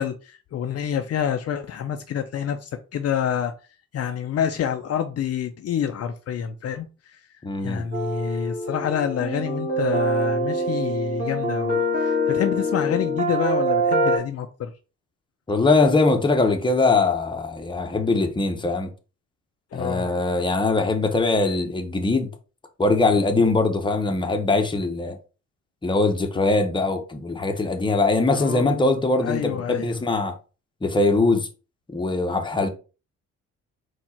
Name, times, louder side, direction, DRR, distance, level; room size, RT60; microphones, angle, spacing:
voice 1, 0.0-3.5 3.9-7.2 7.6-14.7 19.7-20.1 28.3-28.9 29.2-30.0, left 8 dB, 55° left, 0.5 m, -27 dB
voice 2, 7.4-7.8 15.5-18.9 19.7-22.3 22.8-25.2 25.8-30.3 30.8-31.5 31.9-32.7, left 3 dB, 15° left, 0.8 m, -22 dB
sound 1, 7.9-14.2, right 1 dB, 30° right, 2.0 m, -24 dB
4.4 x 2.4 x 4.2 m
cardioid pair, 90°, 30 cm